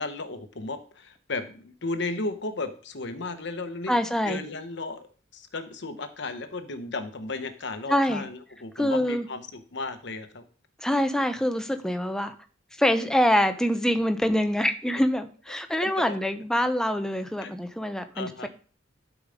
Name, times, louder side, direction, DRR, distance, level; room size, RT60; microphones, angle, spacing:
voice 1, 0.0-4.0 4.2-5.1 5.3-10.4 15.7-16.2 17.4-17.5 18.1-18.5, left 3 dB, 60° left, 9 dB, 1.0 m, -34 dB
voice 2, 3.9-4.4 7.9-8.2 8.8-9.3 10.8-12.3 12.8-18.5, equal, 5° left, 8 dB, 0.7 m, -25 dB
12.0 x 4.9 x 5.1 m, 0.40 s
head